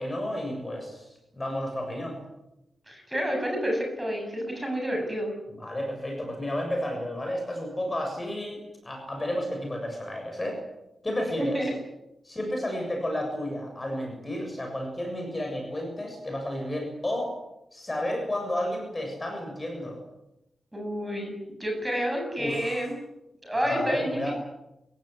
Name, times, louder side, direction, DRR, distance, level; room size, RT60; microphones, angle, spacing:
voice 1, 0.0-2.2 5.5-10.6 11.0-11.7 12.2-17.3 17.7-20.0 22.4-22.9 23.6-24.3, left 1 dB, 15° left, 1 dB, 7.1 m, -32 dB
voice 2, 2.9-5.3 11.4-11.7 20.7-22.9 23.4-24.3, equal, 10° right, 2 dB, 8.0 m, -29 dB
28.5 x 16.5 x 9.9 m, 0.89 s
wide cardioid pair, 180°, 0 cm